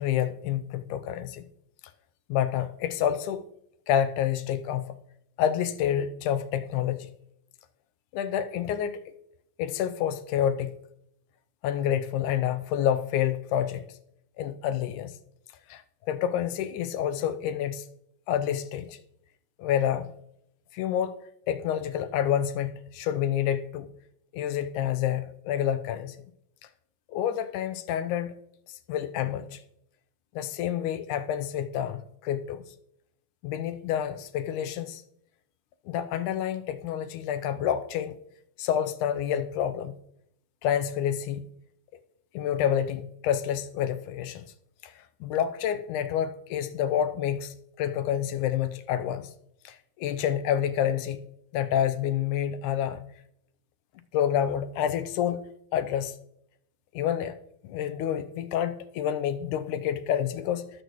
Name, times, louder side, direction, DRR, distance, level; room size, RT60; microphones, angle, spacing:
voice 1, 0.0-1.5 2.3-3.4 3.9-5.0 5.4-7.1 8.1-9.0 9.6-10.8 11.6-13.8 14.4-15.1 15.7-17.8 18.3-19.0 19.6-20.1 20.7-21.1 21.5-23.9 24.3-26.2 27.1-28.3 28.9-29.6 30.4-32.6 33.4-35.0 35.9-38.2 38.6-40.0 40.6-41.5 42.3-44.4 44.8-44.9 45.2-49.3 49.7-51.2 51.5-53.1 54.1-55.4 55.7-56.1 56.9-57.3 57.7-60.7, left 10 dB, 75° left, 2.1 m, -28 dB
20.0 x 8.0 x 3.1 m
omnidirectional pair, 3.8 m